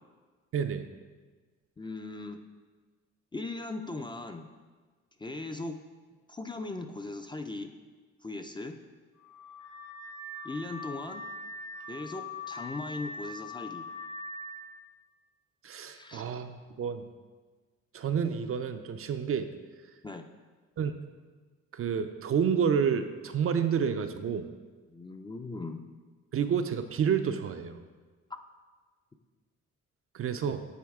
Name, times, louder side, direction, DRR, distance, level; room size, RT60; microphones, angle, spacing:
voice 1, 0.5-0.9 15.6-17.1 17.9-19.5 20.8-20.9 21.7-24.5 26.3-27.8 30.1-30.7, right 7 dB, 50° right, 8 dB, 0.5 m, -29 dB
voice 2, 1.8-2.4 3.3-4.5 5.2-5.8 6.3-7.7 8.2-8.8 10.4-11.2 11.9-13.8 15.9-16.3 20.0-20.3 24.9-25.8, left 2 dB, 15° left, 6 dB, 0.4 m, -38 dB
Car / Alarm, 9.2-14.6, left 2 dB, 75° left, 1.7 m, -42 dB
9.4 x 4.0 x 3.6 m, 1.4 s
cardioid pair, 90°, 30 cm